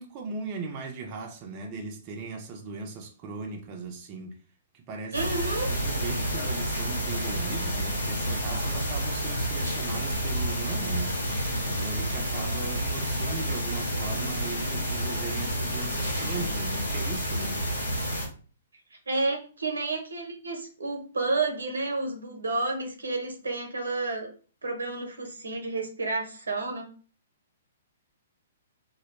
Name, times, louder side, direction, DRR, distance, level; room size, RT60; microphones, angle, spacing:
voice 1, 0.0-4.4 4.7-5.2 5.7-11.2 11.7-17.6, right 4 dB, 35° right, 0.5 m, -38 dB
sound 1, 5.1-18.3, equal, 90° left, 1.0 m, -29 dB
voice 2, 5.1-5.7 18.9-24.3 24.6-26.9, right 3 dB, 80° right, 0.6 m, -30 dB
2.2 x 2.0 x 3.0 m
hypercardioid pair, 125°, 0 cm